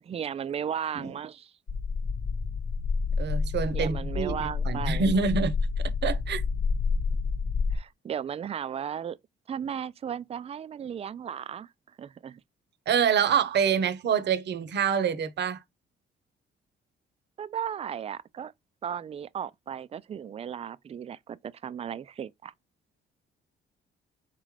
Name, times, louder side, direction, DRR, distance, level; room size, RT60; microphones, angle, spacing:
voice 1, 0.0-1.5 3.7-5.1 7.7-9.2 9.5-11.7 12.0-12.4 17.4-18.5 18.8-22.5, right 8 dB, 30° right, 0.4 m, -35 dB
sound 1, 1.7-7.8, left 4 dB, 45° left, 0.8 m, -29 dB
voice 2, 3.2-5.5 6.0-6.4 12.9-15.6, right 6 dB, 60° right, 0.8 m, -26 dB
4.1 x 3.7 x 3.2 m
cardioid pair, 90°, 20 cm